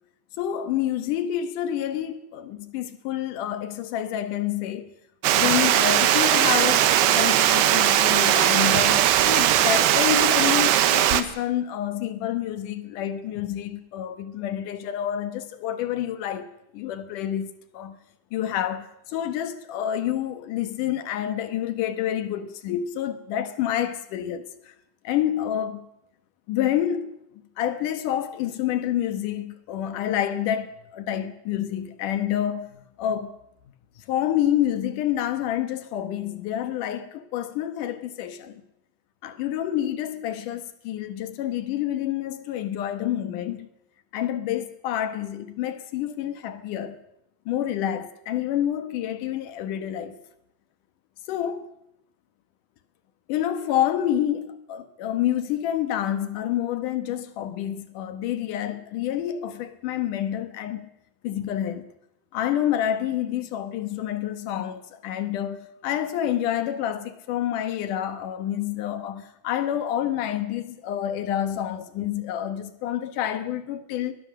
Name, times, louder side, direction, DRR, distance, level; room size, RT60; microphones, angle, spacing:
voice 1, 0.4-4.9 5.3-18.0 18.3-24.7 25.0-25.9 26.5-27.2 27.6-33.4 34.0-38.6 39.2-43.7 44.1-47.0 47.5-50.2 51.3-51.7 53.3-60.9 61.2-61.9 62.3-74.1, left 11 dB, 75° left, 1.9 m, -28 dB
Water, 5.2-11.2, right 12 dB, 75° right, 2.9 m, -19 dB
22.5 x 20.5 x 6.6 m
omnidirectional pair, 5.4 m